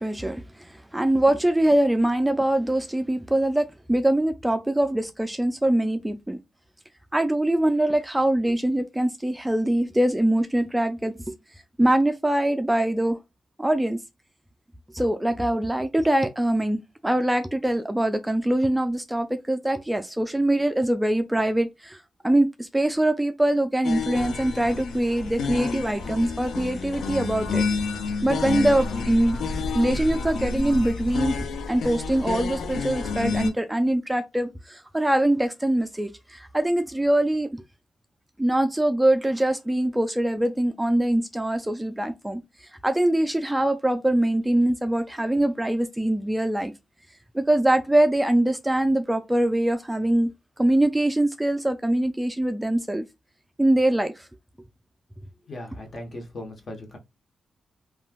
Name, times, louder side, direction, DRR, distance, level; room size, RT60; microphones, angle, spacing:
voice 1, 0.0-6.4 7.1-11.4 11.8-13.2 13.6-14.0 14.9-27.6 28.2-29.4 29.7-31.3 31.7-37.6 38.4-42.4 42.8-46.7 47.3-50.3 50.6-53.0 53.6-54.3, right 1 dB, 10° right, 0.3 m, -23 dB
sound 1, 23.8-33.5, left 4 dB, 80° left, 0.4 m, -29 dB
voice 2, 55.5-57.0, left 1 dB, 50° left, 1.0 m, -38 dB
3.2 x 2.3 x 2.3 m
cardioid pair, 80°, 0 cm